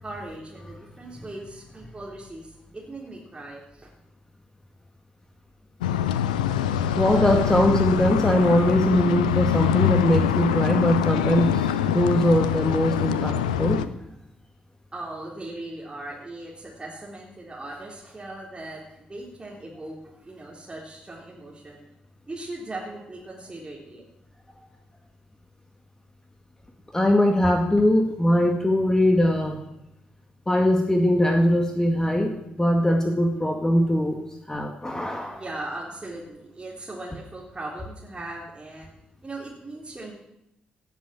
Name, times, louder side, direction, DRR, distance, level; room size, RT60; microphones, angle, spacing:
voice 1, 0.0-3.9 14.9-21.8 22.3-24.0 35.3-38.9 39.2-40.1, right 2 dB, 25° right, -3 dB, 3.9 m, -39 dB
sound 1, 5.8-13.9, left 9 dB, 80° left, 0.6 m, -24 dB
voice 2, 7.0-13.8 26.9-29.6 30.5-34.2 34.5-35.4, left 1 dB, 15° left, 4 dB, 2.0 m, -21 dB
17.5 x 8.0 x 8.6 m, 0.85 s
figure-of-eight pair, 40°, 4 cm